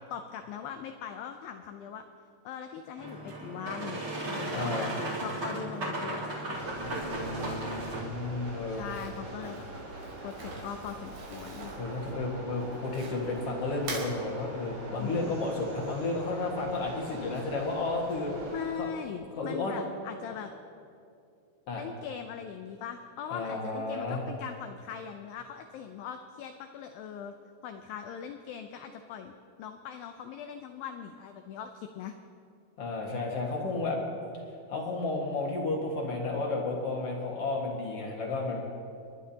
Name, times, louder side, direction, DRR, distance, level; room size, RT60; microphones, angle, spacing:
voice 1, 0.1-2.0 2.5-6.3 8.4-9.7 10.2-11.7 15.0-15.4 18.5-20.5 21.7-27.3 27.6-32.1, left 8 dB, 90° left, 7 dB, 2.0 m, -41 dB
Boat Water vehicle, 3.0-8.0, right 1 dB, 40° right, 3.7 m, -35 dB
voice 2, 4.5-4.9 6.8-8.8 11.8-18.3 18.8-18.9 19.4-19.7 21.7-21.8 23.3-24.2 32.8-34.0 34.7-38.6, left 3 dB, 55° left, -2 dB, 1.8 m, -32 dB
sound 1, 6.5-18.7, right 2 dB, 60° right, 1.0 m, -43 dB
Crumpling crinkling, 8.8-13.4 13.7-14.1, right 3 dB, 75° right, 4.6 m, -43 dB
30.0 x 11.5 x 2.8 m, 2.5 s
omnidirectional pair, 4.8 m